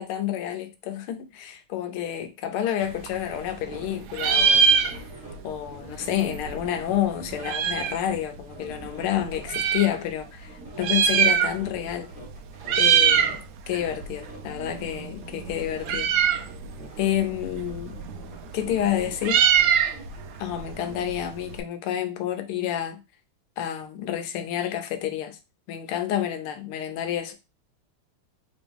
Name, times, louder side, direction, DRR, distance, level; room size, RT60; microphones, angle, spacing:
voice 1, 0.0-4.7 5.4-12.1 12.8-13.4 13.7-16.1 17.0-18.0 18.5-19.5 20.4-23.0 23.6-25.4 25.7-27.3, left 11 dB, 85° left, 1.6 m, -29 dB
Meow, 2.8-3.8 4.1-5.4 5.7-5.8 5.9-8.1 8.7-9.9 10.7-11.9 12.1-12.3 12.6-13.4 13.7-21.6, right 7 dB, 85° right, 0.9 m, -23 dB
sound 1, 3.3-8.2 8.5-13.4 13.7-15.9 16.2-19.3 19.5-21.0, right 1 dB, 5° right, 0.9 m, -45 dB
3.7 x 3.0 x 3.4 m
omnidirectional pair, 2.3 m